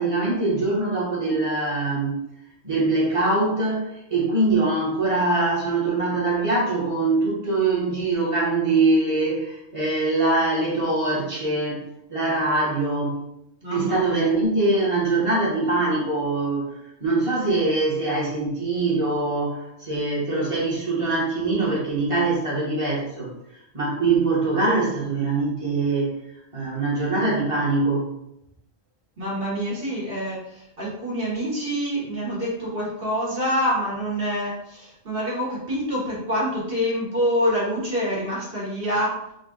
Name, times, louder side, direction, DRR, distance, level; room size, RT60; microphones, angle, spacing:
voice 1, 0.0-2.2 2.6-11.8 12.1-13.2 13.7-16.7 17.0-23.3 23.7-26.2 26.5-28.1, right 2 dB, 30° right, -5 dB, 1.4 m, -23 dB
voice 2, 13.6-14.3 29.2-39.2, equal, 55° right, -7 dB, 1.7 m, -26 dB
3.9 x 2.5 x 3.8 m, 0.81 s
omnidirectional pair, 1.1 m